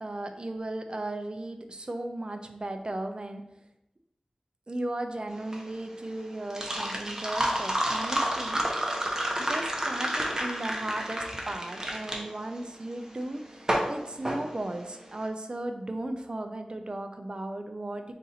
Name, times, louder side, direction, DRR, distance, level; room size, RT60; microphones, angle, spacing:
voice 1, 0.0-3.5 4.7-8.6 9.4-18.1, right 1 dB, 45° right, 6 dB, 0.4 m, -36 dB
sound 1, 5.3-15.2, right 1 dB, 25° right, 0.8 m, -30 dB
3.9 x 2.6 x 4.2 m, 0.88 s
wide cardioid pair, 70°, 2 cm